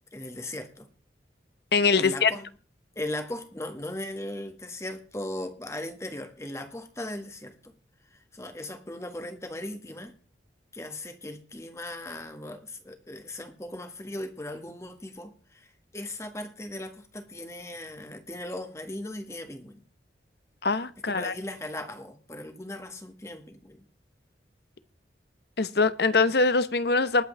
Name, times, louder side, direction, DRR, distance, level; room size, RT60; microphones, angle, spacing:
voice 1, 0.1-0.9 2.0-2.5 2.9-7.7 8.1-10.1 10.7-15.7 15.9-19.8 21.1-23.8, left 1 dB, 15° left, 1.6 m, -38 dB
voice 2, 1.7-2.3 20.6-21.3 25.6-27.2, left 4 dB, 65° left, 0.9 m, -23 dB
20.0 x 8.4 x 3.3 m
head